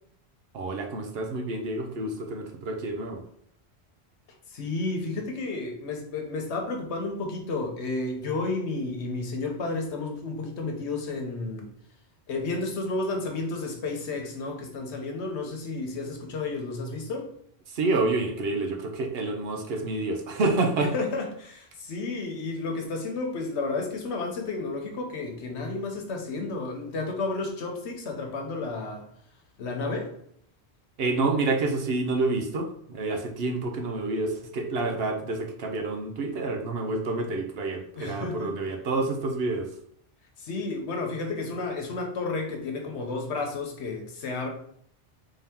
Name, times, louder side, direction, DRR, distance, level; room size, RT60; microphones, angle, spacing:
voice 1, 0.5-3.2 17.7-20.9 31.0-39.7, right 3 dB, 70° right, 3 dB, 0.9 m, -28 dB
voice 2, 4.5-11.7 12.3-17.3 20.8-29.1 29.6-30.1 37.9-38.5 40.4-44.5, left 3 dB, 85° left, 2 dB, 1.1 m, -32 dB
3.7 x 2.8 x 3.5 m, 0.67 s
omnidirectional pair, 1.1 m